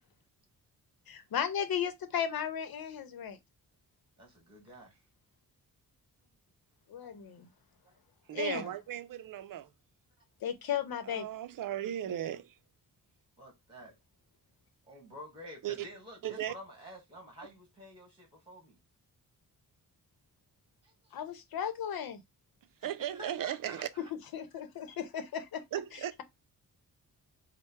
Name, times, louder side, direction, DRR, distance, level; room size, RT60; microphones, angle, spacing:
voice 1, 1.1-3.4 6.9-7.5 8.3-8.7 10.4-11.3 21.1-22.2 24.3-25.6, left 8 dB, 80° left, 0.8 m, -35 dB
voice 2, 4.2-5.0 7.8-8.0 13.4-14.0 14.9-18.8 20.8-21.1 22.8-24.1, equal, 15° right, 1.7 m, -50 dB
voice 3, 8.3-9.7 11.1-12.6 15.6-15.8 16.2-16.5 22.8-23.9 25.7-26.1, right 11 dB, 65° right, 0.5 m, -36 dB
4.5 x 2.2 x 4.3 m
wide cardioid pair, 155°, 36 cm